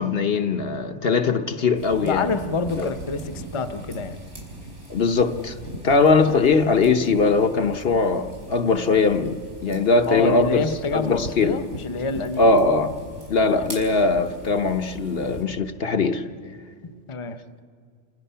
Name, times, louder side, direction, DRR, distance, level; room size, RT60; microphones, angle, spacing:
voice 1, 0.0-2.3 2.8-2.9 4.9-5.5 5.8-10.7 10.9-11.6 12.4-12.9 13.3-16.2, left 4 dB, 60° left, 1.2 m, -20 dB
sound 1, 1.7-15.4, right 1 dB, 85° right, 5.4 m, -39 dB
voice 2, 2.0-4.2 10.1-12.5 13.4-13.7 16.8-17.4, left 4 dB, 30° left, 0.9 m, -28 dB
29.0 x 28.5 x 5.7 m
omnidirectional pair, 1.2 m